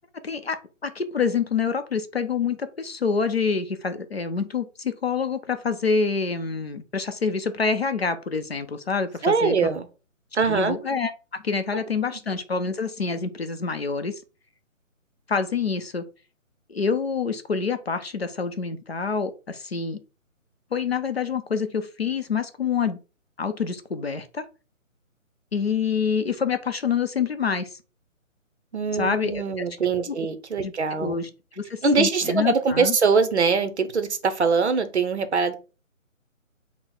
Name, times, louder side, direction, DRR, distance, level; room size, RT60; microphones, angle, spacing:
voice 1, 0.2-0.6 0.8-9.6 10.4-14.2 15.3-16.0 16.7-20.0 20.7-23.0 23.4-24.4 25.5-27.8 29.0-29.6 30.0-30.2 30.6-31.3 31.6-33.0, left 5 dB, 50° left, 10 dB, 0.5 m, -27 dB
voice 2, 9.2-9.9 10.3-10.8 28.7-31.1 31.8-35.5, right 4 dB, 55° right, 10 dB, 0.7 m, -22 dB
4.3 x 2.1 x 3.8 m, 0.33 s
hypercardioid pair, 175°, 40 cm